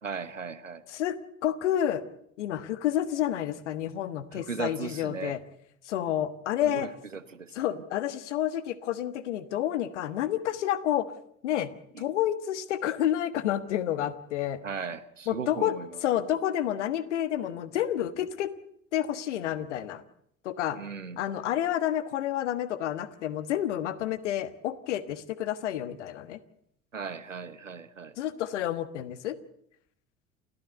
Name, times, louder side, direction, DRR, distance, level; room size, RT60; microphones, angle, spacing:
voice 1, 0.0-0.8 4.3-5.4 6.6-7.6 11.9-12.1 14.6-15.9 20.7-21.2 26.9-28.1, right 5 dB, 85° right, 14 dB, 1.1 m, -37 dB
voice 2, 0.9-2.0 2.4-5.4 5.8-6.9 7.5-11.1 11.4-11.7 12.0-14.6 15.3-15.7 16.0-18.5 18.9-20.0 20.4-20.8 21.2-26.4 28.2-29.4, left 11 dB, 70° left, 15 dB, 1.5 m, -29 dB
28.5 x 14.0 x 7.9 m, 0.70 s
figure-of-eight pair, 65°, 37 cm